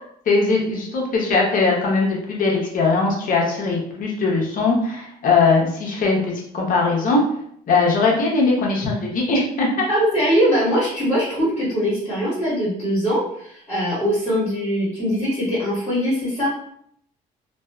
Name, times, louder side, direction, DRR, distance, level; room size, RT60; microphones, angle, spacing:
voice 1, 0.3-6.2 6.5-7.2 7.7-9.9, left 3 dB, 55° left, -1 dB, 0.8 m, -20 dB
voice 2, 9.9-16.5, equal, 30° left, -10 dB, 1.3 m, -21 dB
2.5 x 2.3 x 2.2 m, 0.68 s
cardioid pair, 110°, 17 cm